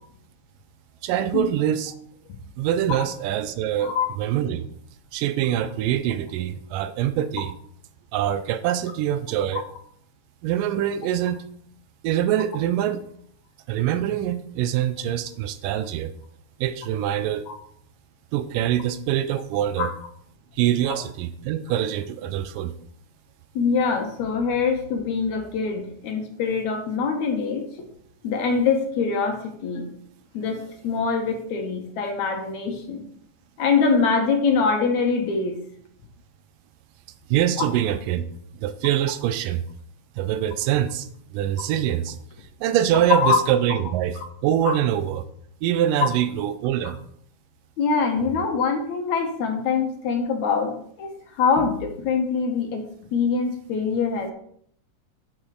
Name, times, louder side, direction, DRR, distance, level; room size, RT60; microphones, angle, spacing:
voice 1, 1.0-1.9 2.6-4.7 5.1-7.5 8.1-9.6 10.4-11.4 12.0-13.0 13.7-16.1 16.6-17.5 18.3-19.9 20.6-22.7 37.3-38.3 38.6-39.6 40.2-42.2 42.6-45.3 45.6-47.0, right 11 dB, 80° right, 13 dB, 2.2 m, -24 dB
voice 2, 23.6-27.7 28.2-29.9 30.3-33.0 33.6-35.6 37.6-37.7 41.6-41.7 43.1-43.4 44.2-44.3 44.6-44.8 46.0-46.1 47.8-54.3, left 5 dB, 70° left, 4 dB, 2.1 m, -24 dB
7.2 x 7.2 x 4.8 m, 0.65 s
omnidirectional pair, 3.9 m